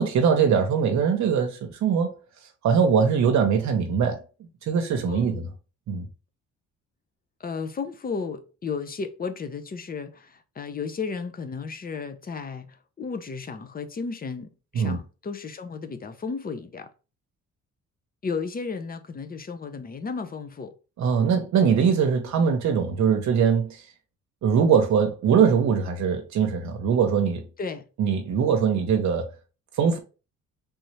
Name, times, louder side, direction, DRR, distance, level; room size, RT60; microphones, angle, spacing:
voice 1, 0.0-2.1 2.6-4.2 4.6-5.5 5.9-6.1 14.7-15.0 21.0-23.8 24.4-27.5 28.0-29.3 29.8-30.0, right 6 dB, 70° right, 0.8 m, -22 dB
voice 2, 5.1-5.4 7.4-16.9 18.2-20.7 27.6-27.9, left 5 dB, 30° left, 0.6 m, -34 dB
3.4 x 2.7 x 3.1 m
cardioid pair, 90°, 30 cm